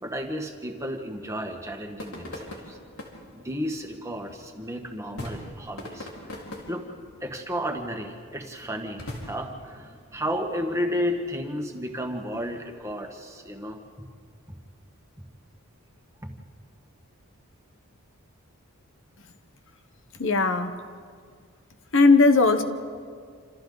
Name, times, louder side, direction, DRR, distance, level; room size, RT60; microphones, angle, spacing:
voice 1, 0.0-2.8 3.3-6.4 6.7-6.9 7.2-14.0 14.5-14.6 16.2-16.3, equal, 15° right, 2 dB, 1.6 m, -33 dB
sound 1, 1.6-11.9, left 1 dB, 75° left, 4.3 m, -43 dB
voice 2, 20.2-20.7 21.9-22.6, left 3 dB, 55° left, 8 dB, 1.1 m, -18 dB
28.0 x 27.5 x 4.0 m, 2.1 s
head